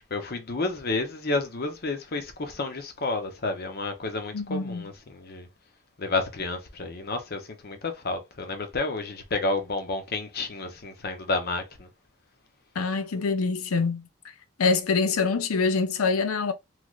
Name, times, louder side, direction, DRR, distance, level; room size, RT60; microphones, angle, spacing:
voice 1, 0.1-5.5 6.0-11.9, left 3 dB, 45° left, 0.7 m, -30 dB
voice 2, 4.3-4.9 12.8-14.1 14.6-16.5, left 4 dB, 90° left, 0.6 m, -25 dB
3.2 x 2.8 x 2.4 m
head